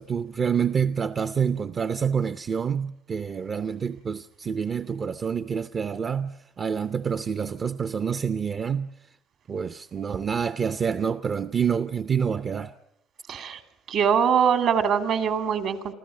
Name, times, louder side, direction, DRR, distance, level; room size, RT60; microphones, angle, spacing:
voice 1, 0.0-8.9 9.5-12.7, right 7 dB, 40° right, 0.7 m, -27 dB
voice 2, 13.3-13.6 13.9-15.9, right 7 dB, 65° right, 2.5 m, -23 dB
27.0 x 14.5 x 7.6 m
cardioid pair, 90°, 0 cm